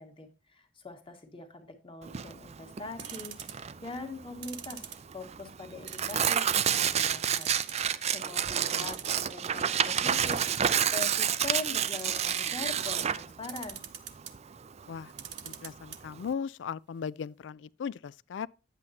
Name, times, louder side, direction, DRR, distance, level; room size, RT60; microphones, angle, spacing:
voice 1, 0.0-4.8 5.1-10.4 10.9-13.8, left 3 dB, 30° left, 1.6 m, -42 dB
Tearing, 2.1-16.3, right 8 dB, 35° right, 0.4 m, -30 dB
sound 1, 3.0-3.7 4.4-5.4 5.9-6.5 6.9-7.0 7.3-8.1 8.5-8.6 8.7-9.4 10.2-11.1 11.8-12.6 13.5-14.3 15.1-16.0 16.3-16.4 16.6-16.7, right 10 dB, 70° right, 1.1 m, -42 dB
voice 2, 15.4-18.5, left 6 dB, 70° left, 0.3 m, -37 dB
10.0 x 8.3 x 2.8 m
head